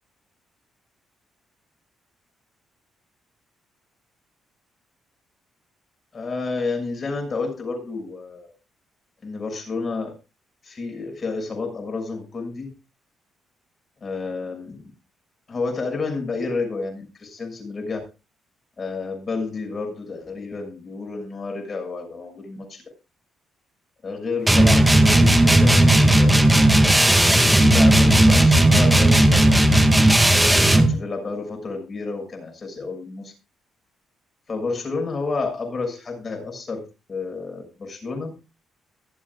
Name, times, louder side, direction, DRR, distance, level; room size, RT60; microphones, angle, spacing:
voice 1, 6.1-8.5 9.2-10.1 10.6-12.7 14.0-14.8 15.5-18.0 18.8-22.8 24.0-26.3 27.5-29.5 30.4-33.3 34.5-36.8 37.1-38.3, left 4 dB, 40° left, 4 dB, 6.5 m, -30 dB
sound 1, 24.5-30.9, right 1 dB, 5° right, 2.1 m, -15 dB
23.5 x 8.0 x 2.4 m, 0.29 s
cardioid pair, 90°, 0 cm